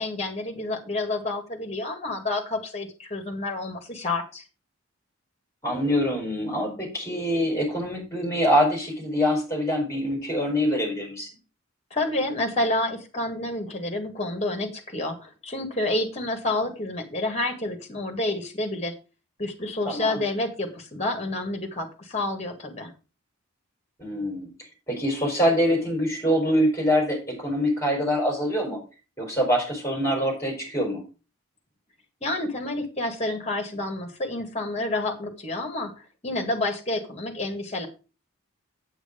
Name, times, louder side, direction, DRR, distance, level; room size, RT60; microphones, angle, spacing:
voice 1, 0.0-4.4 11.9-18.9 19.4-22.9 32.2-37.9, left 2 dB, 30° left, 5 dB, 2.0 m, -29 dB
voice 2, 5.6-11.3 19.8-20.2 24.0-24.5 24.9-28.8 29.2-31.0, equal, 15° left, 0 dB, 4.5 m, -24 dB
8.1 x 8.1 x 5.1 m, 0.33 s
head